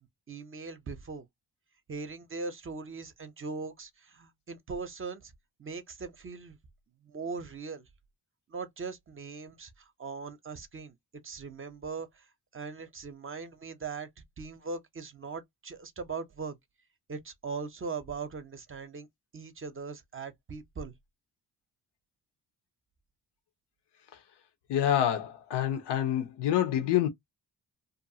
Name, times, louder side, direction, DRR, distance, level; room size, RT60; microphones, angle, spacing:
voice 1, 0.3-1.3 1.9-5.3 5.6-6.6 7.0-7.9 8.5-10.9 11.2-12.3 12.5-14.1 14.4-16.6 17.1-19.1 19.3-20.9, right 4 dB, 30° right, 0.5 m, -40 dB
voice 2, 24.7-27.1, left 11 dB, 90° left, 0.7 m, -27 dB
2.6 x 2.3 x 2.6 m
cardioid pair, 85°, 40 cm